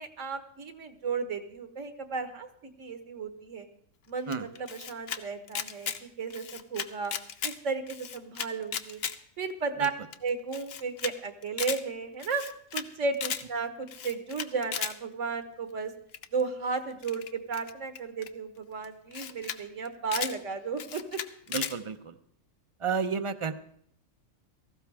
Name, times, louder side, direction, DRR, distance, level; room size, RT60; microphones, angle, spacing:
voice 1, 0.0-2.5 2.8-3.7 4.1-7.1 7.4-9.0 9.4-9.9 10.2-12.4 12.7-15.9 16.3-21.2, right 4 dB, 70° right, 8 dB, 1.6 m, -34 dB
Camera, 4.3-5.2 5.5-6.0 6.3-7.5 7.9-9.1 9.5-9.6 9.8-9.9 10.1-10.2 10.5-11.1 11.4-11.8 12.2-12.9 13.1-13.4 13.9-14.9 16.1-16.4 17.0-18.3 18.8-18.9 19.1-19.6 19.8-20.3 20.8-21.7, left 7 dB, 55° left, 0.9 m, -35 dB
voice 2, 21.5-22.2 22.8-23.5, right 5 dB, 35° right, 11 dB, 0.5 m, -31 dB
17.0 x 15.0 x 3.5 m, 0.65 s
omnidirectional pair, 1.3 m